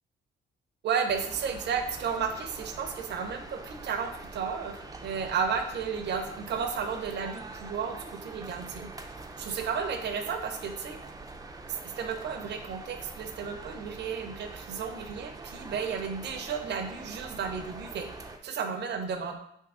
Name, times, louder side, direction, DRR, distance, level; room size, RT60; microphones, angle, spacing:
voice 1, 0.8-8.9 9.4-11.0 11.7-19.4, right 6 dB, 60° right, 6 dB, 0.7 m, -33 dB
sound 1, 1.1-18.4, right 3 dB, 20° right, 0.5 m, -44 dB
3.6 x 2.8 x 4.8 m, 0.75 s
cardioid pair, 90°, 20 cm